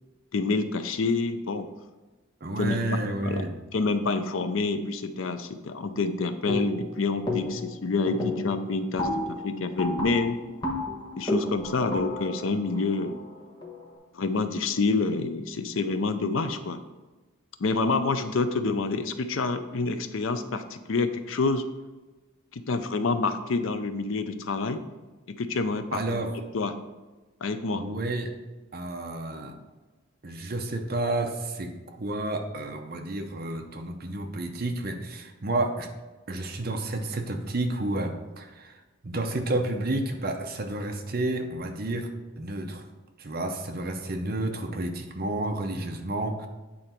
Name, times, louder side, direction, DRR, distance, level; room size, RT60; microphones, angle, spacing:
voice 1, 0.3-1.7 2.6-10.4 11.2-13.2 14.1-16.8 17.6-21.6 22.5-24.8 25.3-26.0 26.3-26.7 27.4-27.8, left 3 dB, 70° left, 9 dB, 0.5 m, -28 dB
voice 2, 2.4-3.5 25.9-26.3 27.7-28.3 28.7-29.5 30.2-35.9 36.3-42.1 42.4-42.8 43.2-46.5, right 2 dB, 45° right, 4 dB, 0.7 m, -30 dB
sound 1, 6.5-6.9 7.3-7.7 8.1-13.9, left 2 dB, 20° left, 1.1 m, -32 dB
8.6 x 3.9 x 4.4 m, 1.2 s
head